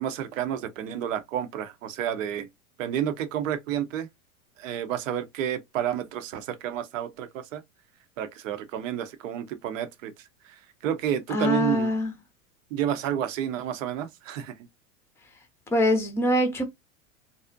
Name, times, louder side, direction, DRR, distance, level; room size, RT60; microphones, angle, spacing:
voice 1, 0.0-2.5 2.8-4.1 4.6-7.6 8.2-10.1 10.4-11.9 12.7-14.5, right 10 dB, 70° right, 0.6 m, -30 dB
voice 2, 11.3-12.1 15.7-16.6, left 1 dB, 5° left, 0.5 m, -23 dB
2.5 x 2.0 x 2.5 m
hypercardioid pair, 105°, 41 cm